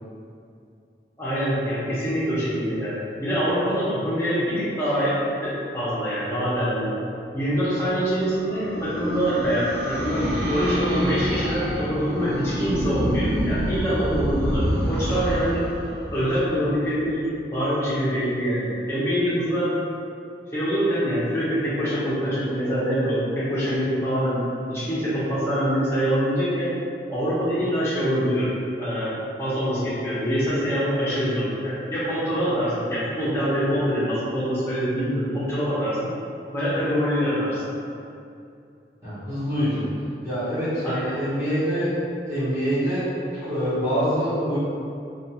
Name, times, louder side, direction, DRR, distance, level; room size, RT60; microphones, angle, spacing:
voice 1, 1.2-2.9 3.2-5.1 5.4-6.9 7.3-15.6 16.1-17.2 17.5-19.7 20.5-24.4 24.7-26.7 27.1-28.5 28.8-29.1 29.4-36.1 36.5-37.6 40.8-41.0, equal, 15° left, -10 dB, 0.7 m, -24 dB
sound 1, 7.5-17.1, equal, 55° right, 1.0 m, -28 dB
voice 2, 39.0-39.9 40.2-42.0 42.3-43.1 43.3-44.6, equal, 15° right, -14 dB, 0.8 m, -25 dB
2.3 x 2.3 x 2.8 m, 2.5 s
head